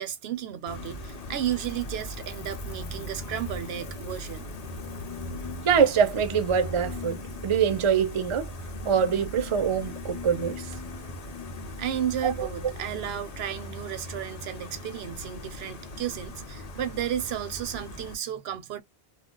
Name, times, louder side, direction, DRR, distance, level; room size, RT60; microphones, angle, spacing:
voice 1, 0.0-4.5 11.8-18.8, right 10 dB, 80° right, 0.8 m, -33 dB
Gull seagull, 0.7-18.1, left 1 dB, 45° left, 0.7 m, -39 dB
voice 2, 5.6-8.5 8.8-10.8 12.2-12.5, right 7 dB, 40° right, 0.5 m, -24 dB
2.3 x 2.0 x 3.7 m
omnidirectional pair, 1.0 m